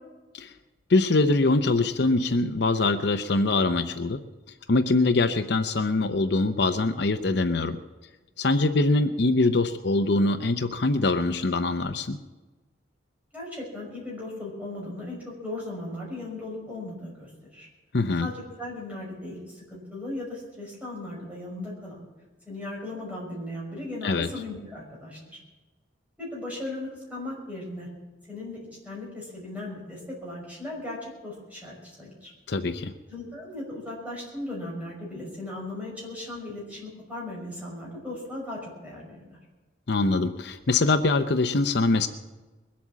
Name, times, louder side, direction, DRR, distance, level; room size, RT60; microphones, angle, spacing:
voice 1, 0.9-4.2 4.7-7.8 8.4-12.2 17.9-18.3 24.0-24.3 32.5-32.9 39.9-42.1, left 3 dB, 60° left, 9 dB, 0.7 m, -23 dB
voice 2, 13.3-17.7 18.2-22.0 22.5-25.4 26.2-27.9 28.3-28.6 28.8-32.3 33.1-39.4, left 2 dB, 10° right, -4 dB, 5.8 m, -37 dB
21.5 x 8.5 x 7.4 m, 1.2 s
head